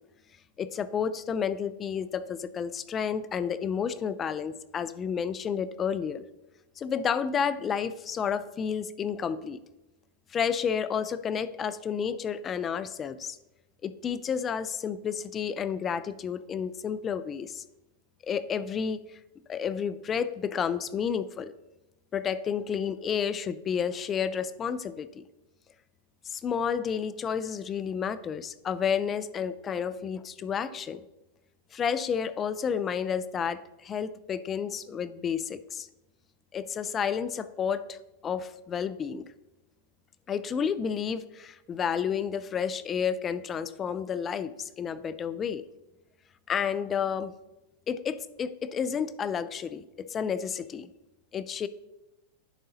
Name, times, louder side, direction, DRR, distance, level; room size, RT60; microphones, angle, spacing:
voice 1, 0.6-6.2 6.8-9.6 10.3-13.4 13.8-17.6 18.3-19.0 19.5-21.5 22.1-25.2 26.2-31.0 31.7-35.9 36.5-38.0 38.2-39.3 40.3-45.6 46.5-47.3 47.9-50.9 51.3-51.7, left 7 dB, 25° left, 15 dB, 0.4 m, -31 dB
10.5 x 4.0 x 3.9 m, 0.96 s
hypercardioid pair, 120°, 0 cm